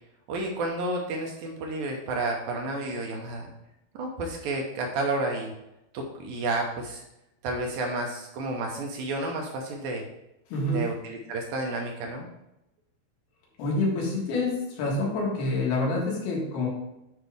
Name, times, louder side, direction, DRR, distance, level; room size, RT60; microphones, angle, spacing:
voice 1, 0.3-3.5 4.0-5.5 5.9-7.0 7.4-10.0 10.7-12.3, right 2 dB, 75° right, 1 dB, 2.4 m, -31 dB
voice 2, 10.5-10.8 13.6-16.7, left 2 dB, 75° left, -2 dB, 3.5 m, -27 dB
8.0 x 5.5 x 3.5 m, 0.87 s
omnidirectional pair, 4.6 m